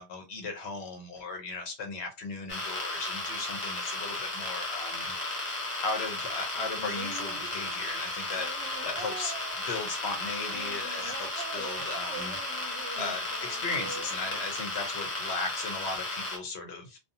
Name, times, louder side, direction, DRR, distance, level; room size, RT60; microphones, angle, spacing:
voice 1, 0.0-5.1 5.8-8.5 8.8-9.3 9.7-12.4 13.0-17.0, left 3 dB, 75° left, 0.9 m, -37 dB
sound 1, 2.5-16.4, left 2 dB, 40° left, 1.1 m, -34 dB
sound 2, 6.5-14.9 15.9-16.0, right 5 dB, 80° right, 0.9 m, -44 dB
2.5 x 2.3 x 2.6 m
omnidirectional pair, 1.1 m